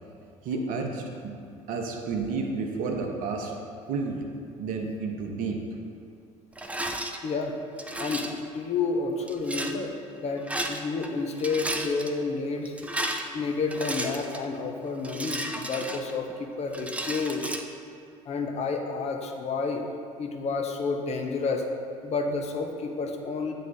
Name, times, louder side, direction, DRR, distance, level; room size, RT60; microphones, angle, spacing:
voice 1, 0.4-1.3 1.7-3.5 3.9-4.3 4.6-5.6, right 4 dB, 55° right, 3 dB, 0.8 m, -31 dB
Rattle, 6.6-7.2 7.8-8.4 9.3-9.8 10.4-11.1 11.3-12.1 12.7-14.5 15.0-16.3 16.7-17.6, right 1 dB, 5° right, 0.4 m, -33 dB
voice 2, 7.2-7.5 8.0-12.7 13.3-17.5 18.3-19.8 20.2-21.6 22.0-23.5, left 4 dB, 40° left, 2 dB, 0.7 m, -30 dB
8.3 x 3.4 x 3.9 m, 2.4 s
figure-of-eight pair, 60°, 18 cm